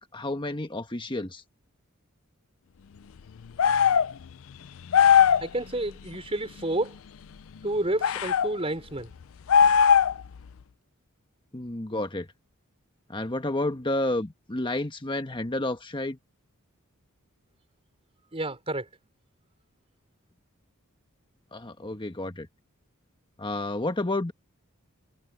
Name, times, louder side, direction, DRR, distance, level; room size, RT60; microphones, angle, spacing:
voice 1, 0.0-1.4 11.5-12.3 13.1-16.2 21.5-22.5 23.4-24.3, left 2 dB, 25° left, 1.3 m, -30 dB
sound 1, 3.6-4.1 4.9-5.5 8.0-8.5 9.5-10.3, left 7 dB, 65° left, 0.4 m, -19 dB
voice 2, 5.4-6.9 7.6-9.1 18.3-18.9, right 1 dB, 25° right, 4.9 m, -30 dB
head